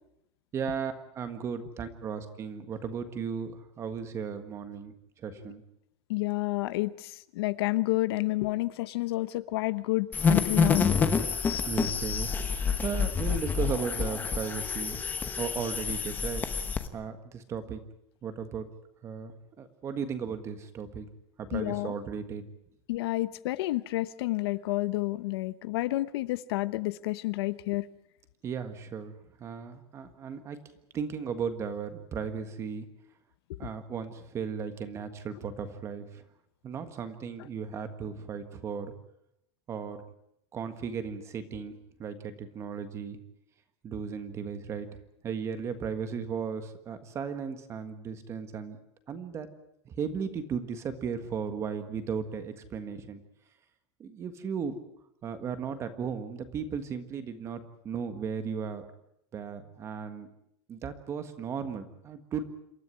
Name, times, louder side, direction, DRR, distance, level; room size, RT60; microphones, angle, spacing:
voice 1, 0.5-4.9 5.2-5.6 11.6-15.0 15.4-16.4 16.9-17.8 18.2-18.7 19.0-21.1 21.4-22.4 28.4-29.1 29.4-30.6 30.9-32.9 33.6-36.2 36.6-38.9 39.7-40.0 40.5-41.7 42.0-43.2 43.8-44.9 45.2-48.8 49.1-49.5 49.8-53.2 54.0-54.7 55.2-58.8 59.3-60.3 60.7-62.4, right 6 dB, 20° right, 10 dB, 1.6 m, -36 dB
voice 2, 6.1-10.9 21.5-21.9 22.9-27.9, left 19 dB, 65° left, 16 dB, 0.9 m, -30 dB
sound 1, 10.1-16.9, left 5 dB, 10° left, 1.0 m, -28 dB
27.5 x 13.5 x 9.6 m, 0.79 s
supercardioid pair, 180°, 14 cm